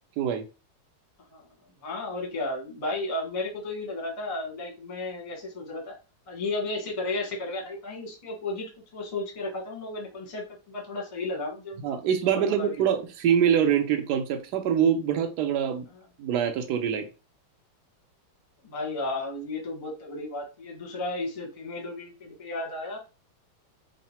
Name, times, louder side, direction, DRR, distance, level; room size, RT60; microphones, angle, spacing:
voice 1, 1.8-5.9 6.3-12.0 12.2-12.8 18.6-23.0, left 2 dB, 25° left, 0.7 m, -34 dB
voice 2, 11.8-15.9 16.2-17.0, right 8 dB, 75° right, 0.9 m, -24 dB
3.8 x 2.1 x 4.2 m
omnidirectional pair, 2.4 m